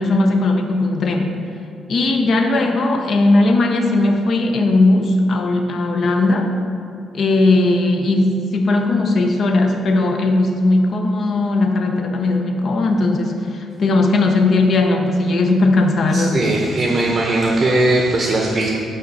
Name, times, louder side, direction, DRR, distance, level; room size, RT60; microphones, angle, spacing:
voice 1, 0.0-1.3 1.9-6.6 7.1-16.4, left 2 dB, 55° left, 4 dB, 0.6 m, -17 dB
voice 2, 16.1-18.7, right 2 dB, 35° right, -1 dB, 0.6 m, -18 dB
5.6 x 4.2 x 4.0 m, 2.4 s
cardioid pair, 90°, 0 cm